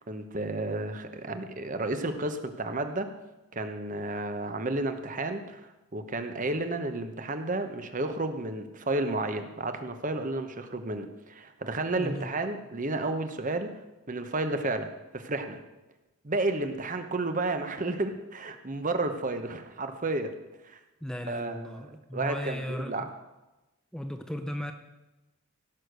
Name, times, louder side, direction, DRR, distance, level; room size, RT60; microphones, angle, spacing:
voice 1, 0.0-3.1 3.5-13.7 14.1-15.6 16.2-20.4 20.6-20.8 21.3-23.1, right 2 dB, 40° right, 8 dB, 1.0 m, -32 dB
voice 2, 12.0-12.3 21.0-23.1 23.9-24.7, equal, 5° left, 6 dB, 0.6 m, -36 dB
16.5 x 6.5 x 6.5 m, 1.0 s
head